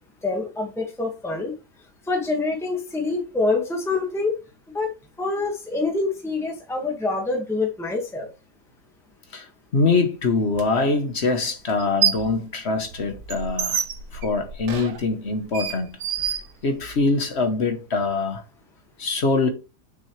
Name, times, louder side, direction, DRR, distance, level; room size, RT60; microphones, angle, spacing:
voice 1, 0.2-1.5 2.1-4.3 4.7-4.9 5.2-8.3, left 3 dB, ahead, 1.6 m, -26 dB
voice 2, 9.7-13.8 14.1-15.9 16.3-16.4 16.6-18.4 19.0-19.5, left 3 dB, 45° left, 1.3 m, -23 dB
sound 1, 10.5-10.6 11.7-12.4 12.7-17.1, right 8 dB, 70° right, 1.3 m, -28 dB
6.4 x 6.2 x 3.2 m
omnidirectional pair, 1.7 m